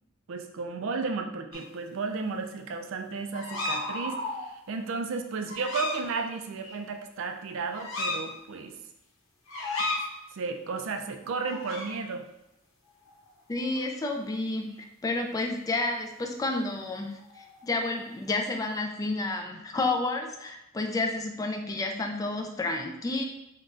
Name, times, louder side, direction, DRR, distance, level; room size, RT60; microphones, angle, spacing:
voice 1, 0.3-8.7 10.3-12.3, right 4 dB, 70° right, 5 dB, 0.4 m, -33 dB
sound 1, 1.5-1.6 3.3-4.5 5.5-6.0 6.6-6.8 7.7-8.2 9.5-10.0 11.4-11.9 13.1-13.3 13.6-13.9 17.2-17.9, left 2 dB, 75° left, 0.8 m, -33 dB
voice 2, 13.5-23.2, left 2 dB, 15° left, 3 dB, 0.3 m, -30 dB
3.8 x 2.2 x 2.5 m, 0.89 s
head